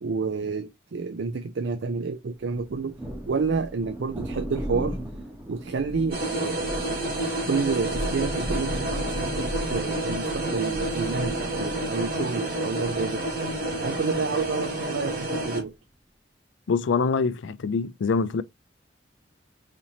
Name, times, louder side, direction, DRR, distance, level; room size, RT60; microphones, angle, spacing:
voice 1, 0.0-3.0 3.3-5.0 5.5-6.8 7.4-15.7, right 4 dB, 75° right, 0.4 m, -29 dB
Thunder, 2.5-15.7, equal, 10° right, 0.8 m, -37 dB
sound 1, 6.1-15.6, right 1 dB, 50° right, 2.5 m, -29 dB
voice 2, 16.7-18.4, left 5 dB, 85° left, 0.4 m, -24 dB
4.2 x 3.0 x 2.7 m
head